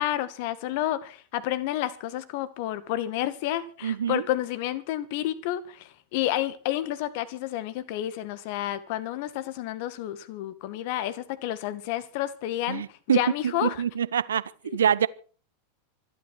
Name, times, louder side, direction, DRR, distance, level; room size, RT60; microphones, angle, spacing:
voice 1, 0.0-13.8 14.7-14.8, left 13 dB, 50° left, 1.8 m, -30 dB
voice 2, 3.8-4.2 12.7-13.2 13.6-14.4 14.7-15.1, right 8 dB, 70° right, 0.8 m, -25 dB
25.0 x 12.0 x 4.7 m
figure-of-eight pair, 90°, 0 cm